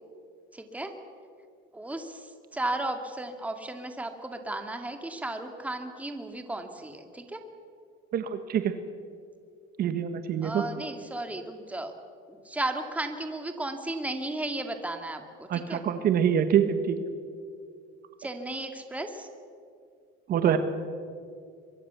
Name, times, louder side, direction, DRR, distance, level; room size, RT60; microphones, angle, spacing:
voice 1, 0.5-0.9 1.7-7.4 10.4-12.0 12.3-15.8 18.2-19.3, right 2 dB, 5° right, 5 dB, 2.2 m, -35 dB
voice 2, 8.1-8.7 9.8-10.6 15.5-17.0 20.3-20.6, right 9 dB, 45° right, 9 dB, 1.4 m, -25 dB
24.0 x 22.5 x 7.0 m, 2.3 s
cardioid pair, 125°, 21 cm